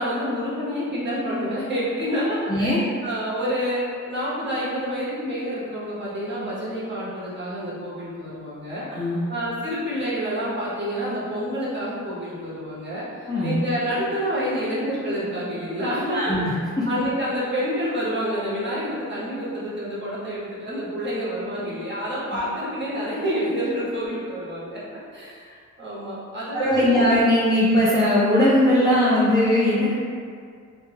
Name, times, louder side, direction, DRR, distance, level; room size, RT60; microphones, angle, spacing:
voice 1, 0.0-8.9 9.3-16.5 16.8-24.8 25.1-27.1, equal, 35° right, -8 dB, 0.7 m, -28 dB
voice 2, 8.9-9.2 13.3-13.6 16.1-16.5 26.5-29.9, left 1 dB, 15° left, -10 dB, 0.4 m, -19 dB
2.1 x 2.1 x 3.1 m, 2.1 s
wide cardioid pair, 125°, 31 cm